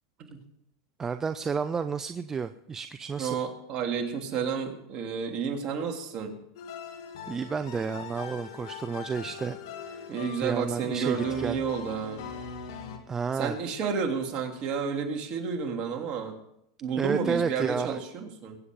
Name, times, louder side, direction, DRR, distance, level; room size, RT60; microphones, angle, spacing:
voice 1, 1.0-3.5 7.3-9.6 9.9-10.0 10.4-11.6 13.1-13.6 16.9-18.0, right 5 dB, 20° right, 10 dB, 0.6 m, -31 dB
voice 2, 3.2-6.4 10.1-12.2 13.3-16.3 16.8-18.6, right 6 dB, 45° right, 3 dB, 3.2 m, -31 dB
sound 1, 6.6-13.0, left 7 dB, 70° left, 2.5 m, -42 dB
22.0 x 8.6 x 5.4 m, 0.77 s
hypercardioid pair, 110°, 2 cm